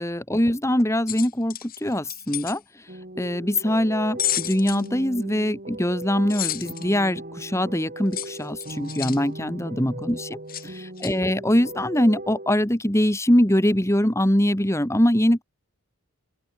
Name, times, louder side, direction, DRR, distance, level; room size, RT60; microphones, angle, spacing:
voice 1, 0.0-2.6 3.2-15.4, left 1 dB, 15° left, 2.1 m, -23 dB
sound 1, 1.1-2.6 4.2-4.9 6.3-6.8 8.1-9.2 10.5-10.7 11.0-11.1, left 12 dB, 40° left, 7.1 m, -30 dB
sound 2, 2.9-12.5, right 1 dB, 40° right, 4.7 m, -38 dB
open air
head